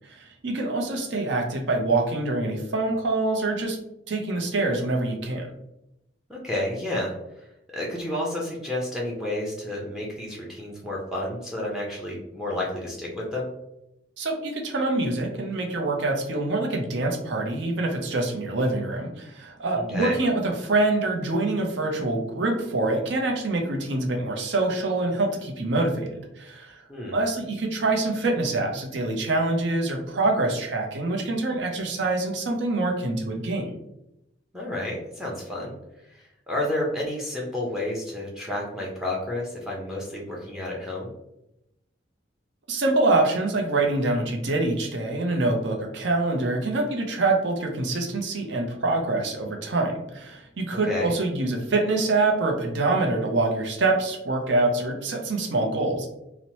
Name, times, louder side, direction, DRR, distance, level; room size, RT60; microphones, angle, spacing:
voice 1, 0.1-3.8 4.1-5.5 14.2-26.8 27.1-33.7 42.7-56.1, right 2 dB, 70° right, 2 dB, 0.6 m, -25 dB
voice 2, 6.3-7.1 7.7-13.5 19.7-20.2 26.9-27.2 34.5-35.7 36.1-41.1 50.9-51.1, left 1 dB, ahead, -3 dB, 0.5 m, -30 dB
2.8 x 2.0 x 2.9 m, 0.86 s
head